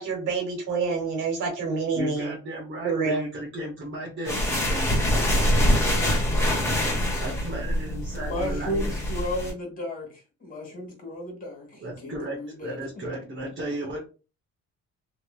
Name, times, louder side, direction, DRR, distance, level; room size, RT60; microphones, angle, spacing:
voice 1, 0.0-2.3 2.8-3.2, right 4 dB, 90° right, 2 dB, 1.3 m, -27 dB
voice 2, 1.9-6.5 7.0-9.0 11.8-14.0, right 1 dB, 40° right, -1 dB, 1.1 m, -35 dB
sound 1, 4.2-9.5, equal, 10° left, 1.4 m, -24 dB
voice 3, 8.2-12.8, left 1 dB, 30° left, 1 dB, 1.5 m, -34 dB
3.0 x 2.9 x 2.3 m, 0.33 s
cardioid pair, 90°, 30 cm